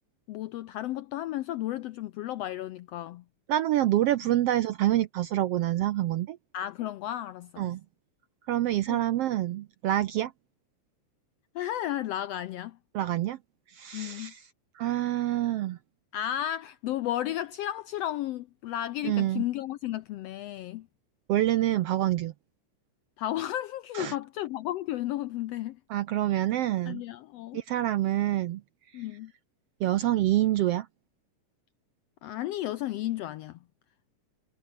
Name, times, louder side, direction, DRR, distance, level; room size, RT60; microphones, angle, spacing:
voice 1, 0.3-3.2 6.5-7.7 8.9-9.0 11.5-12.8 13.9-14.3 16.1-20.9 23.2-25.8 26.3-26.4 26.9-27.6 28.9-29.3 32.2-33.6, left 13 dB, 80° left, 1.4 m, -33 dB
voice 2, 3.5-6.4 7.6-7.8 8.5-10.3 12.9-13.4 13.7-14.4 14.7-15.8 19.0-19.4 21.3-22.3 23.9-24.1 25.9-27.0 27.5-28.6 28.9-29.0 29.8-30.9, right 13 dB, 75° right, 1.4 m, -26 dB
omnidirectional pair, 3.5 m